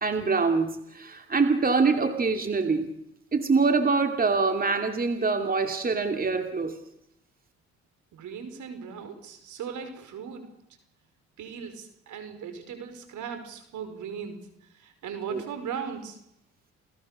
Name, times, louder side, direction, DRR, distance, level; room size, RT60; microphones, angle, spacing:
voice 1, 0.0-2.9 3.3-6.8 15.3-15.4, right 4 dB, 30° right, 5 dB, 2.8 m, -24 dB
voice 2, 8.1-10.5 11.4-16.2, right 7 dB, 75° right, 8 dB, 5.3 m, -38 dB
29.0 x 19.5 x 6.8 m, 0.76 s
cardioid pair, 90°, 30 cm